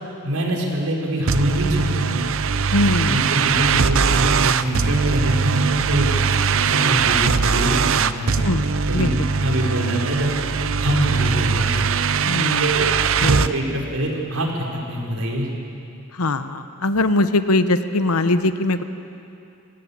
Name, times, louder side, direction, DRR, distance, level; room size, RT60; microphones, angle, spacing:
voice 1, 0.2-2.2 3.1-6.1 6.6-8.4 8.9-9.1 9.4-10.3 10.8-11.8 12.6-12.9 13.2-15.5, right 1 dB, 75° right, -1 dB, 4.5 m, -24 dB
sound 1, 1.3-13.5, right 5 dB, 60° right, 0.7 m, -20 dB
voice 2, 2.7-3.3 8.4-8.7 8.9-9.1 12.2-12.7 13.2-13.4 16.1-18.8, left 2 dB, 80° left, 10 dB, 1.0 m, -21 dB
26.5 x 16.5 x 8.7 m, 2.7 s
head